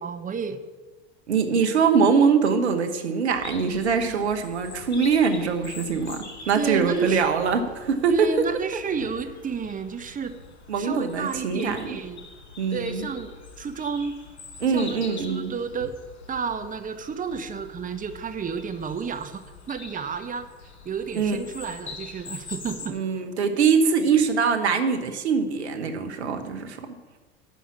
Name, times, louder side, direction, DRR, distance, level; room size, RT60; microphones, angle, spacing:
voice 1, 0.0-0.6 4.0-4.3 6.5-7.2 8.1-10.4 10.8-12.3 12.7-14.2 14.7-15.9 16.3-19.4 19.7-20.5 20.8-22.9, right 5 dB, 25° right, 8 dB, 1.2 m, -31 dB
voice 2, 1.3-8.3 10.7-12.0 12.6-13.1 14.6-15.5 21.1-21.4 22.9-26.9, right 5 dB, 85° right, 6 dB, 1.1 m, -23 dB
sound 1, 3.3-22.9, left 4 dB, 85° left, 2.2 m, -44 dB
11.0 x 5.7 x 8.4 m, 1.3 s
hypercardioid pair, 80°, 33 cm